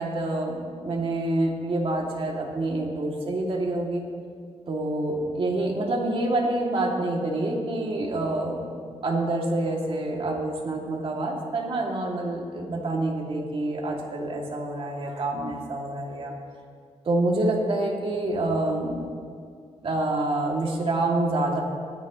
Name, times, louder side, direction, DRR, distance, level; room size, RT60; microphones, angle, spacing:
voice 1, 0.0-4.0 4.7-8.7 9.0-16.3 17.0-19.0 19.8-21.6, right 2 dB, 50° right, -1 dB, 2.7 m, -27 dB
25.5 x 11.0 x 3.2 m, 2.1 s
cardioid pair, 95°, 12 cm